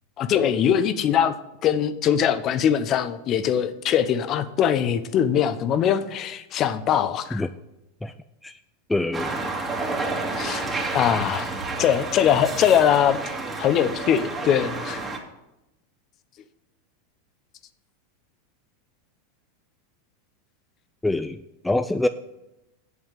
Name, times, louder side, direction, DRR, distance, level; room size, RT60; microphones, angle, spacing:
voice 1, 0.2-1.3 1.6-7.4 10.3-10.7 10.9-13.2 13.6-15.0, left 9 dB, 40° left, 13 dB, 0.8 m, -22 dB
voice 2, 8.9-9.4 21.0-22.1, left 2 dB, 5° left, 10 dB, 0.4 m, -25 dB
sound 1, 9.1-15.2, right 3 dB, 20° right, 2.1 m, -30 dB
8.2 x 7.2 x 7.3 m, 0.91 s
hypercardioid pair, 110°, 0 cm